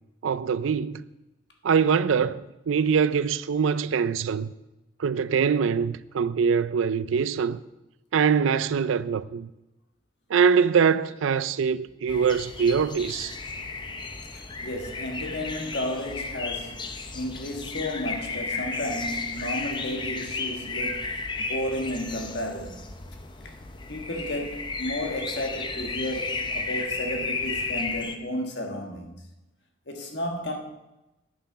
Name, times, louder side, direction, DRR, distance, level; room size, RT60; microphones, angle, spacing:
voice 1, 0.2-1.1 1.6-4.5 5.0-7.6 8.1-9.5 10.3-13.4, right 6 dB, 80° right, 0.4 m, -23 dB
sound 1, 12.1-28.2, left 4 dB, 25° left, 0.6 m, -34 dB
voice 2, 14.3-21.1 21.5-23.0 23.4-23.6 23.9-29.3 29.9-30.6, left 1 dB, 55° left, 1.5 m, -33 dB
9.3 x 7.5 x 5.6 m
head